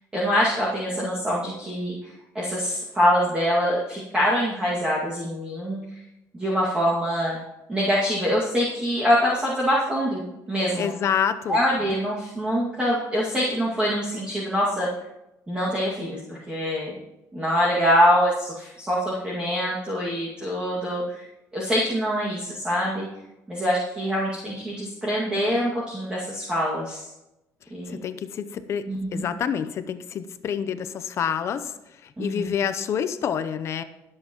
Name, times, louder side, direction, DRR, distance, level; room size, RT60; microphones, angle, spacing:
voice 1, 0.1-1.9 2.3-5.8 6.3-7.4 7.7-10.9 11.5-14.9 15.5-17.0 17.3-21.2 21.5-23.1 23.5-27.1 27.7-28.0 28.9-29.3 32.2-32.5, equal, 15° right, -6 dB, 2.1 m, -24 dB
voice 2, 10.8-11.6 27.9-31.7 32.2-33.8, left 8 dB, 45° left, 11 dB, 0.7 m, -27 dB
22.0 x 7.7 x 3.0 m, 0.92 s
cardioid pair, 145°, 6 cm